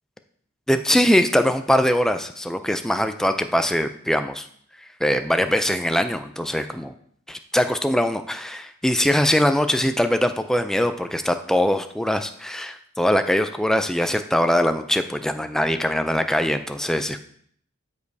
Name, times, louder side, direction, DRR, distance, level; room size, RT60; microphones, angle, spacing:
voice 1, 0.7-4.5 5.0-6.9 7.3-17.2, equal, ahead, 8 dB, 0.3 m, -22 dB
13.0 x 5.1 x 2.7 m, 0.63 s
head